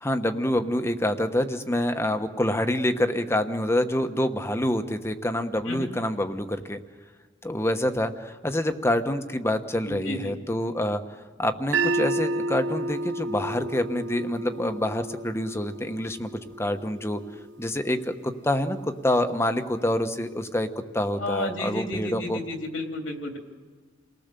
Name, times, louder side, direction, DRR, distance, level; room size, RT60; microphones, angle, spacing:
voice 1, 0.0-6.8 7.4-11.0 11.4-16.3 16.6-17.2 17.6-20.7 20.9-22.4, left 1 dB, 15° left, 8 dB, 1.1 m, -26 dB
voice 2, 9.9-10.3 21.2-23.4, left 1 dB, 80° left, 3 dB, 3.2 m, -32 dB
sound 1, 11.7-17.9, right 2 dB, 65° right, 0.7 m, -31 dB
29.0 x 19.0 x 6.9 m, 1.5 s
head